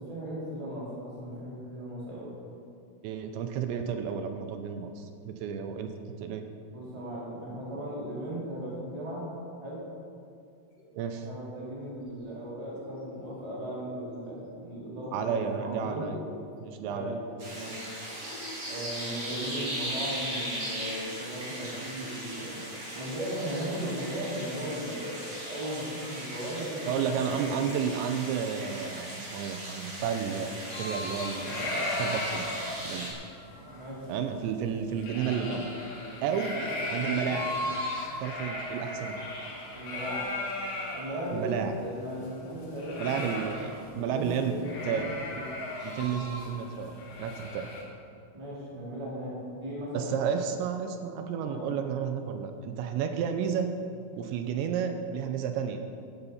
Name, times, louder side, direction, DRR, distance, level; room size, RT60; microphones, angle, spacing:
voice 1, 0.0-2.3 6.7-9.3 9.6-9.8 11.2-16.0 16.9-17.1 17.5-17.8 18.6-27.6 33.7-34.1 36.1-36.6 37.0-37.2 39.7-40.3 40.9-43.2 43.9-45.4 48.3-50.1 51.4-51.6, equal, 10° right, -7 dB, 3.4 m, -37 dB
voice 2, 3.0-5.9 6.2-6.4 10.9-11.3 15.1-16.2 16.6-17.2 26.9-32.4 32.8-33.2 34.1-35.7 36.2-36.6 36.9-37.5 38.2-39.2 41.3-41.7 43.0-44.5 44.8-45.1 45.8-47.7 49.9-53.7 54.2-55.8, right 7 dB, 80° right, 7 dB, 2.8 m, -32 dB
sound 1, 10.7-11.2 11.6-12.3 12.6-13.3 13.6-14.4 14.8-15.5 15.8-16.6 17.0-17.7 18.1-18.8 19.3-20.1 20.6-21.3 21.8-22.6, left 1 dB, 45° left, 2.1 m, -48 dB
sound 2, 17.4-33.1, right 1 dB, 30° right, 5.0 m, -38 dB
sound 3, 30.7-41.2 41.5-41.6 41.8-44.0 44.2-44.4 44.6-47.8, left 1 dB, 65° left, 4.9 m, -36 dB
15.0 x 12.5 x 5.7 m, 2.5 s
omnidirectional pair, 5.7 m